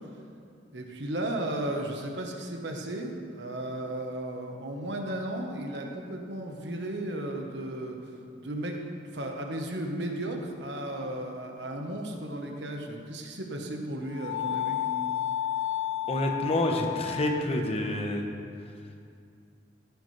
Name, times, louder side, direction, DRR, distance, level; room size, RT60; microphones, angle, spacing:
voice 1, 0.7-8.0 8.4-8.8 9.1-14.8, right 1 dB, 80° right, 2 dB, 1.3 m, -34 dB
sound 1, 14.1-17.4, left 11 dB, 80° left, 1.0 m, -31 dB
voice 2, 16.1-18.2, left 1 dB, 35° left, 3 dB, 1.0 m, -28 dB
17.0 x 8.4 x 3.3 m, 2.4 s
head